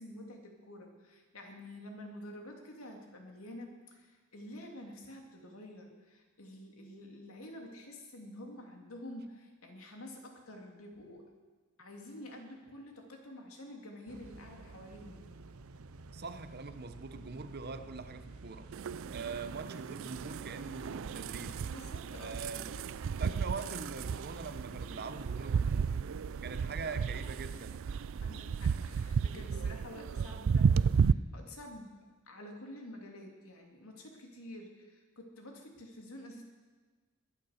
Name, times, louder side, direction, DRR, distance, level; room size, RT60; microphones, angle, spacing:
voice 1, 0.0-11.3 11.8-15.3 21.7-22.5 27.9-32.0 32.3-36.4, left 1 dB, 75° left, 1 dB, 2.8 m, -49 dB
sound 1, 14.1-27.0, right 3 dB, 80° right, 0.7 m, -51 dB
voice 2, 16.1-18.7 19.1-21.6 22.1-22.8 23.2-26.0 26.4-27.9, right 4 dB, 50° right, 10 dB, 0.9 m, -43 dB
sound 2, 18.7-31.1, right 6 dB, 65° right, 0.4 m, -33 dB
21.5 x 9.5 x 6.6 m, 1.4 s
head